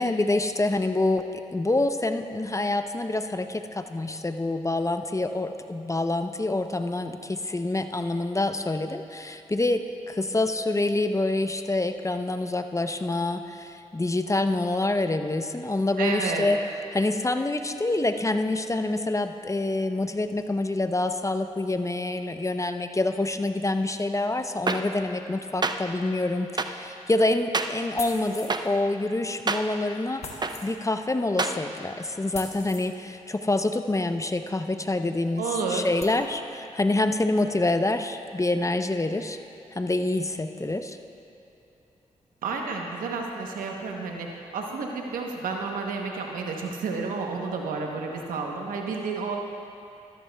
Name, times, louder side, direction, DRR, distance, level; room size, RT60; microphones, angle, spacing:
voice 1, 0.0-16.6 16.9-30.3 30.6-39.4 39.7-41.0, left 2 dB, 20° left, 8 dB, 0.6 m, -26 dB
voice 2, 16.0-16.5 35.4-35.8 42.4-49.4, right 4 dB, 90° right, 1 dB, 0.9 m, -31 dB
sound 1, 24.7-24.8 25.6-25.7 26.6-26.7 27.5-27.7 28.5-28.6 29.5-29.6 30.4-30.5 31.4-31.5, right 3 dB, 30° right, 0.6 m, -25 dB
sound 2, 28.0-28.7 30.2-30.7 32.3-32.9 34.8-34.9 35.4-35.5 36.0-36.2, left 3 dB, 50° left, 1.4 m, -39 dB
14.0 x 13.5 x 2.3 m, 2.8 s
supercardioid pair, 40°, 14 cm